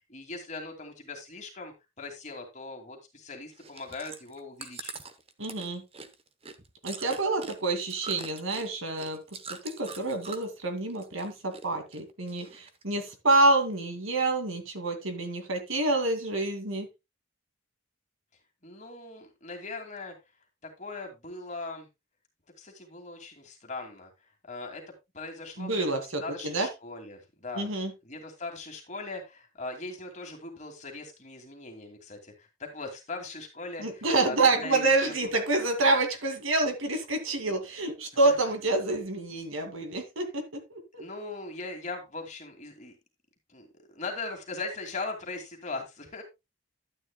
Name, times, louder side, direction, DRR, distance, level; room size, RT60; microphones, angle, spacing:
voice 1, 0.1-5.0 18.6-20.2 20.6-21.9 22.6-24.1 24.5-27.7 28.0-35.3 38.2-38.4 41.0-43.0 43.5-46.2, left 3 dB, 35° left, 2 dB, 2.4 m, -40 dB
Chewing mastication, 3.5-10.6 10.9-11.6 11.9-12.8 13.3-13.4, right 5 dB, 30° right, 0.9 m, -43 dB
voice 2, 5.4-5.8 6.8-9.2 9.6-16.9 25.6-26.7 27.6-27.9 33.8-41.0, right 2 dB, 80° right, 6 dB, 2.2 m, -27 dB
12.0 x 10.0 x 2.2 m, 0.22 s
head